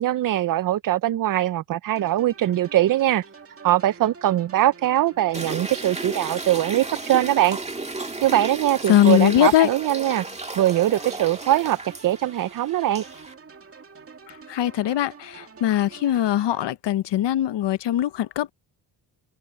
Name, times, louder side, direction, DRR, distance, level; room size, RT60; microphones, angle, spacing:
voice 1, 0.0-3.2 3.6-7.6 8.2-10.2 10.6-13.0, right 13 dB, 50° right, 0.5 m, -22 dB
sound 1, 2.0-16.7, right 5 dB, 35° right, 2.2 m, -46 dB
sound 2, 5.3-13.3, right 2 dB, 15° right, 2.0 m, -34 dB
voice 2, 8.9-9.7 14.3-18.5, left 12 dB, 80° left, 0.8 m, -21 dB
open air
wide cardioid pair, 125°, 42 cm